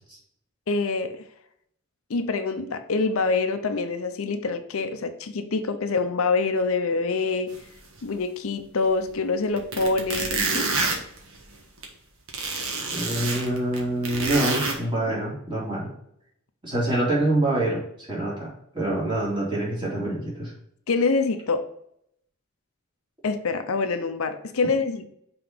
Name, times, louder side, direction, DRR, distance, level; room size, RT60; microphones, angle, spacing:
voice 1, 0.7-1.2 2.1-7.5 8.0-10.7 20.9-21.6 23.2-25.1, left 4 dB, 70° left, 8 dB, 0.6 m, -25 dB
sound 1, 7.5-7.6 8.0-8.1 9.1-9.2 9.6-11.8 12.3-14.7, right 3 dB, 65° right, 1.4 m, -27 dB
voice 2, 12.9-15.9 16.6-20.5, right 1 dB, 20° right, -5 dB, 2.6 m, -26 dB
5.9 x 3.8 x 5.2 m, 0.72 s
head